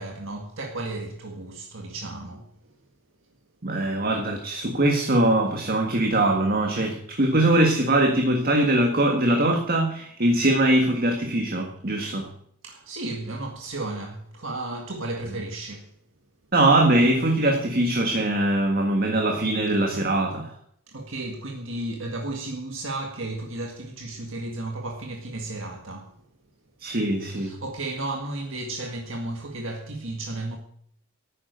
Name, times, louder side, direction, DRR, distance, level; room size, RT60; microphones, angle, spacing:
voice 1, 0.0-2.5 12.6-15.9 20.9-26.2 27.3-30.6, right 2 dB, 60° right, 1.9 m, -33 dB
voice 2, 3.6-12.3 16.5-20.5 26.8-27.5, right 1 dB, 40° right, 1.7 m, -22 dB
12.0 x 9.4 x 7.9 m
head